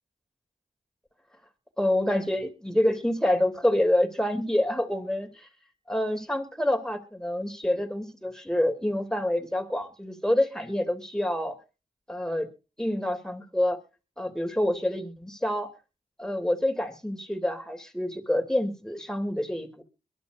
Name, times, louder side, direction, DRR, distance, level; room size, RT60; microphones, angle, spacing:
voice 1, 1.8-5.5 5.9-11.6 12.1-12.5 12.8-13.8 14.2-15.7 16.2-19.8, left 1 dB, 5° left, 5 dB, 3.3 m, -27 dB
22.5 x 11.5 x 2.6 m, 0.32 s
cardioid pair, 40°, 17 cm